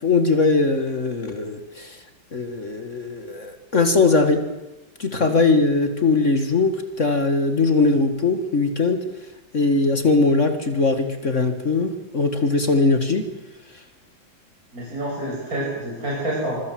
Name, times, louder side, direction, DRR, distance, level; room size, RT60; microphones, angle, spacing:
voice 1, 0.0-2.0 2.3-4.4 5.0-9.0 9.5-13.2, left 3 dB, 40° left, 8 dB, 1.9 m, -20 dB
voice 2, 14.7-16.6, right 1 dB, 45° right, -4 dB, 7.4 m, -28 dB
25.5 x 24.0 x 7.6 m, 1.0 s
omnidirectional pair, 2.1 m